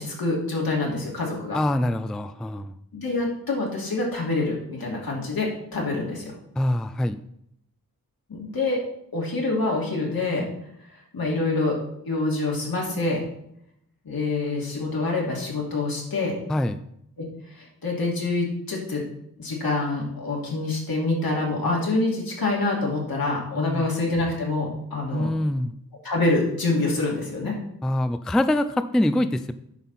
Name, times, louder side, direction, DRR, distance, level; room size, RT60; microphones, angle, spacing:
voice 1, 0.0-1.6 2.9-6.3 8.3-8.8 9.1-10.5 11.1-13.2 14.0-16.4 17.2-17.3 17.5-19.1 19.4-25.3 26.0-27.6, left 2 dB, 75° left, -2 dB, 2.6 m, -26 dB
voice 2, 1.5-2.7 6.6-7.2 16.5-16.8 23.6-23.9 25.1-25.7 27.8-29.5, left 1 dB, ahead, 11 dB, 0.3 m, -24 dB
9.2 x 5.9 x 4.1 m, 0.74 s
wide cardioid pair, 90°, 36 cm